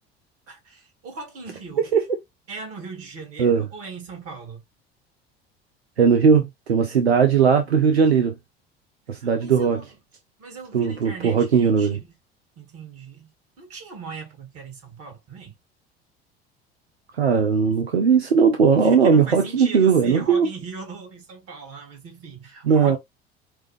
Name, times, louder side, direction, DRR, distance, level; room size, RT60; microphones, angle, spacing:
voice 1, 0.5-1.9 2.5-4.6 9.1-9.9 10.4-12.2 12.6-13.3 13.6-15.6 17.6-17.8 18.8-23.0, right 4 dB, 50° right, 2.2 m, -39 dB
voice 2, 6.0-8.3 9.1-9.8 10.7-12.0 17.1-20.5 22.6-23.0, right 6 dB, 90° right, 0.6 m, -18 dB
4.7 x 2.4 x 3.2 m
figure-of-eight pair, 65°, 31 cm